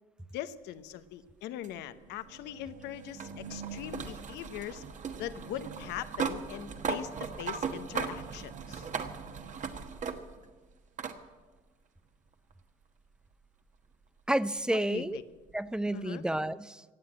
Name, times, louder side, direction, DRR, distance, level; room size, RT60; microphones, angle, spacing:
voice 1, 0.3-4.8 5.2-8.9 14.7-15.2 15.9-16.2, left 12 dB, 85° left, 13 dB, 0.9 m, -41 dB
sound 1, 1.6-10.5 11.0-11.2 12.5-12.6 15.5-15.6, right 5 dB, 45° right, 1.3 m, -38 dB
voice 2, 14.3-15.2 15.5-16.8, right 1 dB, 5° right, 17 dB, 0.5 m, -30 dB
17.0 x 8.0 x 8.8 m, 1.3 s
cardioid pair, 110°, 17 cm